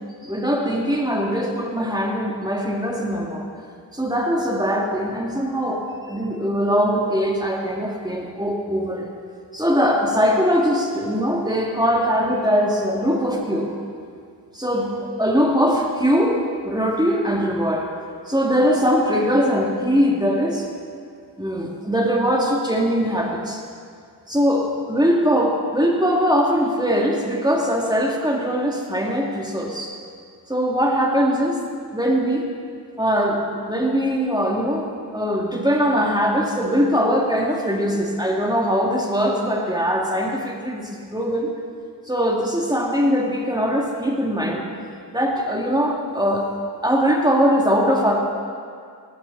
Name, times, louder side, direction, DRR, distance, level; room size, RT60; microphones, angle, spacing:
voice 1, 0.2-3.5 3.9-9.1 9.5-13.7 14.5-16.4 16.6-17.9 18.3-20.7 21.4-23.6 24.3-29.9 30.5-31.6 31.9-32.5 33.0-34.9 35.1-41.5 42.1-44.7 45.1-46.5 46.8-48.2, equal, 10° right, -1 dB, 2.6 m, -21 dB
17.5 x 15.0 x 4.2 m, 2.2 s
cardioid pair, 55°, 43 cm